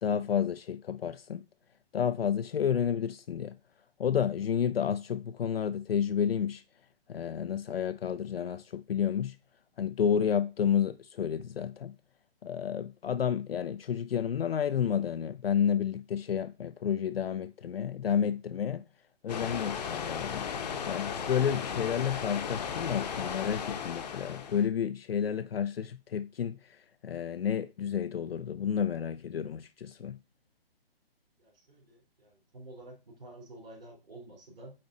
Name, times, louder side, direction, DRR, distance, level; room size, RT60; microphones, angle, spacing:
voice 1, 0.0-1.4 1.9-3.6 4.0-6.6 7.1-9.4 9.8-12.0 12.4-18.8 19.2-20.5 20.9-26.8 27.0-30.2, left 8 dB, 70° left, 0.5 m, -30 dB
sound 1, 19.3-24.6, left 7 dB, 45° left, 0.9 m, -36 dB
voice 2, 31.4-34.7, right 2 dB, 65° right, 3.4 m, -50 dB
8.6 x 3.1 x 3.8 m
figure-of-eight pair, 140°, 30 cm